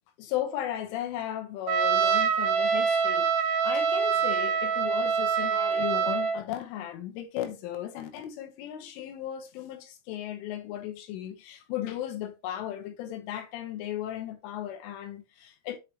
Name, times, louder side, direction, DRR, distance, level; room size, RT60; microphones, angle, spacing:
voice 1, 0.2-3.3 3.6-15.8, left 11 dB, 80° left, 3.5 m, -36 dB
Trumpet, 1.7-6.4, right 6 dB, 90° right, 3.5 m, -25 dB
8.2 x 4.8 x 3.0 m
omnidirectional pair, 5.8 m